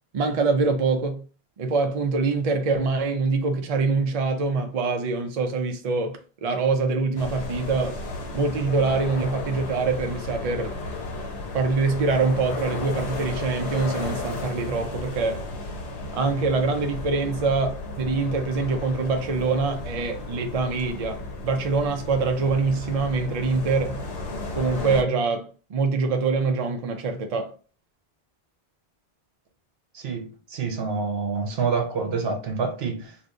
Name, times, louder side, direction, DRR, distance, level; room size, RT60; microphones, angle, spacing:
voice 1, 0.1-1.2 1.6-8.0 8.3-10.8 11.5-15.4 16.1-24.0 24.6-27.5, right 4 dB, 50° right, 0.5 m, -24 dB
sound 1, 7.2-25.0, left 2 dB, 75° left, 1.0 m, -34 dB
voice 2, 29.9-33.2, right 5 dB, 70° right, 1.0 m, -27 dB
2.6 x 2.5 x 3.5 m
omnidirectional pair, 1.1 m